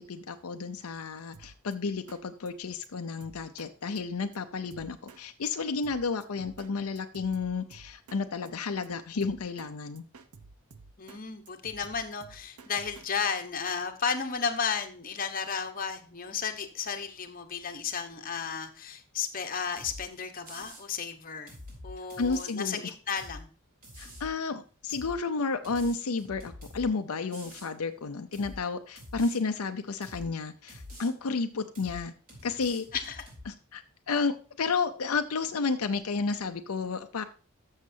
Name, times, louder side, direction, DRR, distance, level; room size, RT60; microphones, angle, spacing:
voice 1, 0.1-10.0 22.2-22.9 24.0-32.1 32.4-32.9 33.5-37.2, left 4 dB, 75° left, 7 dB, 0.6 m, -32 dB
Drum kit, 1.3-1.7 2.1-2.2 2.5-2.6 2.8-2.9 3.2-3.7 4.0-4.1 4.3-4.4 4.7-5.2 5.5-5.6 5.8-6.7 7.0-8.2 8.5-8.6 8.8-8.9 9.2-9.7 10.0-11.2 11.5-13.2, right 4 dB, 85° right, 0.8 m, -51 dB
voice 2, 11.0-21.5 21.8-23.5 32.9-33.3, left 6 dB, 40° left, 6 dB, 1.0 m, -33 dB
sound 1, 19.8-20.0 20.4-20.8 21.5-22.5 23.2-23.4 23.8-24.3 24.9-25.2 25.6-26.9 27.3-27.7 28.3-28.6 29.0-29.4 30.0-30.3 30.7-31.1 31.7-32.0 32.3-33.5, left 1 dB, 40° right, 3.7 m, -46 dB
13.5 x 6.5 x 2.7 m, 0.37 s
head